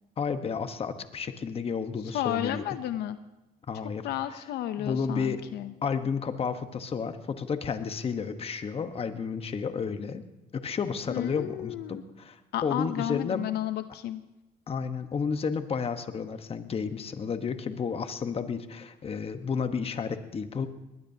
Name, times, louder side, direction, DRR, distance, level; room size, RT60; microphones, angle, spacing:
voice 1, 0.2-2.6 3.7-4.0 4.3-4.4 4.8-5.4 5.8-10.2 10.5-13.4 14.7-20.7, left 6 dB, 35° left, 9 dB, 1.2 m, -32 dB
voice 2, 2.1-3.2 4.0-5.7 11.1-12.0 12.5-14.2, left 12 dB, 75° left, 11 dB, 0.7 m, -32 dB
21.5 x 19.5 x 2.8 m, 1.0 s
cardioid pair, 110°, 17 cm